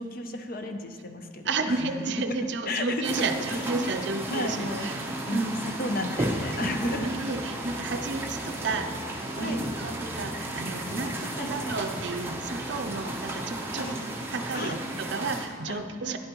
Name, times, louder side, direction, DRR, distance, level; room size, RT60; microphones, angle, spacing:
voice 1, 0.0-1.9 2.7-3.2 3.5-3.9 4.3-7.1 7.7-7.8 9.4-9.7 11.3-11.8 13.7-14.0 14.5-14.7 15.7-16.2, left 1 dB, 45° left, 6 dB, 0.6 m, -34 dB
voice 2, 1.4-5.0 5.3-5.6 6.9-8.9 9.4-14.0 14.3-16.2, right 3 dB, 60° right, 7 dB, 0.5 m, -32 dB
sound 1, 2.6-14.4, equal, 65° left, 1.7 m, -48 dB
sound 2, 3.0-15.5, right 1 dB, 10° right, 0.7 m, -34 dB
sound 3, 6.8-13.0, left 1 dB, 10° left, 0.3 m, -46 dB
11.0 x 8.7 x 3.0 m, 2.1 s
head